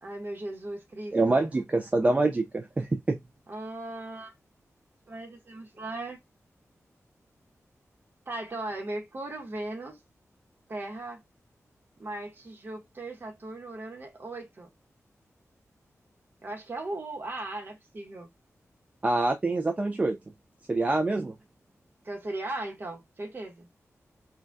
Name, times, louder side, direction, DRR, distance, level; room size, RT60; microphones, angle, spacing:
voice 1, 0.0-1.5 3.5-4.3 5.1-6.2 8.3-10.0 10.7-11.2 12.0-14.7 16.4-18.3 22.0-23.7, right 2 dB, 40° right, 0.9 m, -37 dB
voice 2, 1.1-3.2 19.0-20.2 20.7-21.3, right 2 dB, 25° right, 0.3 m, -25 dB
3.3 x 2.2 x 2.5 m
wide cardioid pair, 150°, 5 cm